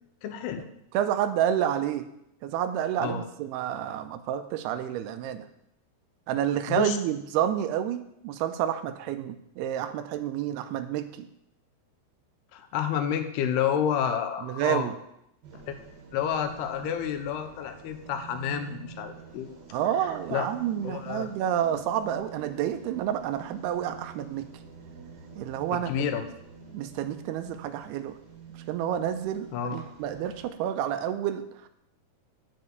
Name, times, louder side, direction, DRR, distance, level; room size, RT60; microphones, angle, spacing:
voice 1, 0.2-0.7 3.0-3.3 6.7-7.0 12.5-14.9 15.7-15.8 16.1-19.5 20.3-20.5 20.8-21.3 25.7-26.2 29.5-29.8, left 8 dB, 85° left, 7 dB, 2.8 m, -29 dB
voice 2, 0.9-2.1 2.4-5.5 6.3-11.3 14.4-15.0 19.7-24.5 25.4-25.9 26.7-28.2 28.7-31.7, right 10 dB, 90° right, 9 dB, 2.7 m, -29 dB
sound 1, 15.4-30.5, right 7 dB, 75° right, 3.8 m, -47 dB
8.1 x 5.7 x 7.8 m, 0.78 s
omnidirectional pair, 4.5 m